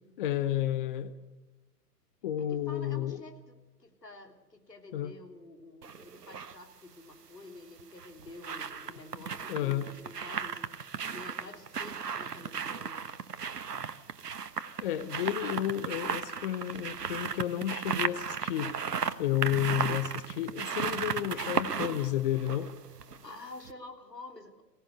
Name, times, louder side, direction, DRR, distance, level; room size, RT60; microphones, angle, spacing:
voice 1, 0.2-1.1 2.2-3.2 4.9-5.1 9.5-9.9 14.8-18.7 19.2-22.7, left 12 dB, 35° left, 13 dB, 0.9 m, -31 dB
voice 2, 2.4-13.1 23.2-24.6, left 2 dB, 80° left, 4 dB, 3.5 m, -49 dB
sound 1, 5.8-6.6 7.8-23.3 23.6-23.7, right 6 dB, 70° right, 1.2 m, -35 dB
23.0 x 17.5 x 6.8 m, 1.1 s
figure-of-eight pair, 120°, 48 cm